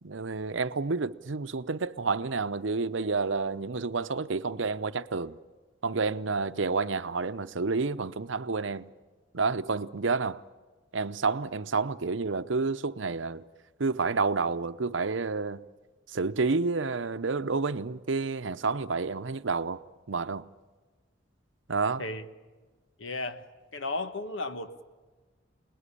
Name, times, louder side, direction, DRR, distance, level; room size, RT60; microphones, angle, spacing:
voice 1, 0.0-5.4 5.8-8.9 9.3-10.4 10.9-13.4 13.8-15.6 16.1-19.8 20.1-20.5 21.7-22.0, right 4 dB, 75° right, 0.8 m, -29 dB
voice 2, 23.0-23.5 23.7-24.8, left 2 dB, 85° left, 1.5 m, -34 dB
27.5 x 20.0 x 10.0 m
head